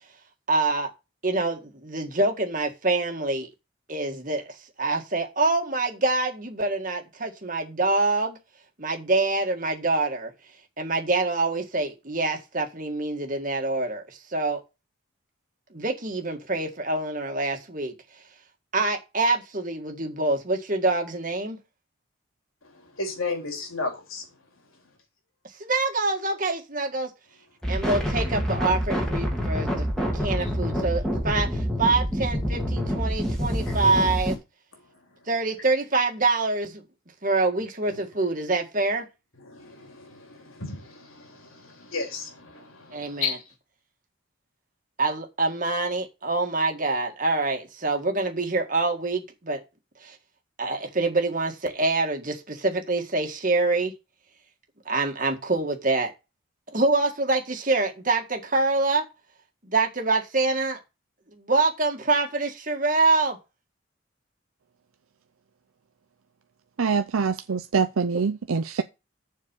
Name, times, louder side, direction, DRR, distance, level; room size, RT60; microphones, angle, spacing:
voice 1, 0.5-0.9 1.2-3.5 3.9-8.4 8.8-10.3 10.8-14.6 15.7-17.9 18.7-21.6 25.6-27.1 27.7-34.4 35.3-36.8 37.2-39.1 42.9-43.3 45.0-49.6 50.0-50.2 50.6-53.9 54.9-56.1 56.7-59.0 59.6-60.8 61.3-63.4 68.1-68.2, right 3 dB, 40° right, 1.8 m, -25 dB
voice 2, 22.6-24.9 30.4-30.5 33.6-33.8 34.8-35.3 37.9-38.0 39.3-43.5, left 4 dB, 85° left, 3.2 m, -35 dB
sound 1, 27.6-34.4, equal, 5° left, 2.0 m, -27 dB
voice 3, 66.8-68.8, right 5 dB, 85° right, 0.6 m, -24 dB
7.3 x 4.6 x 6.9 m
head